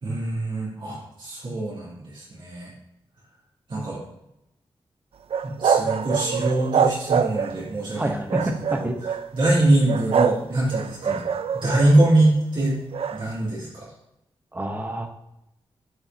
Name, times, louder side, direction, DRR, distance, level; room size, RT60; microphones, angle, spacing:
voice 1, 0.0-2.7 3.7-4.0 5.4-8.3 8.7-8.9 9.3-11.2 11.5-12.8 13.1-13.9, right 1 dB, 60° right, -7 dB, 3.3 m, -23 dB
sound 1, 5.3-7.7 8.3-9.3 9.9-10.4 10.7-12.2 12.9-13.2, right 7 dB, 85° right, 0.5 m, -24 dB
voice 2, 8.0-9.0 11.0-11.2 14.5-15.1, right 1 dB, 20° right, 4 dB, 1.0 m, -28 dB
11.0 x 8.8 x 2.9 m, 0.86 s
wide cardioid pair, 175°, 10 cm